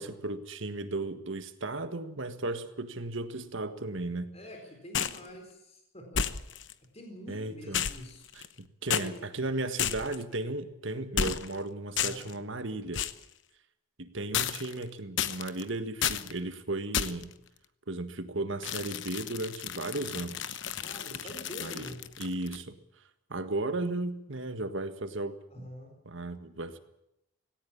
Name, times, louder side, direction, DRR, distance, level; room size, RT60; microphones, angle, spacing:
voice 1, 0.0-4.4 7.3-7.9 8.3-13.0 14.0-17.4 17.9-20.6 21.1-21.3 21.6-21.9 22.2-22.8 23.3-25.7 26.0-26.8, right 2 dB, 60° right, 10 dB, 1.7 m, -35 dB
voice 2, 4.3-6.3 6.9-8.3 8.9-9.1 12.0-12.3 20.8-22.0 25.5-26.0, equal, 30° left, 2 dB, 4.3 m, -46 dB
sound 1, 4.9-5.3 6.1-6.7 7.7-8.6 8.9-9.1 9.8-10.2 11.2-11.6 12.0-12.3 12.9-13.2 14.3-14.8 15.2-15.6 16.0-16.3 16.9-17.3 18.6-22.6, left 8 dB, 55° left, 1.0 m, -32 dB
18.5 x 17.5 x 8.6 m, 0.84 s
head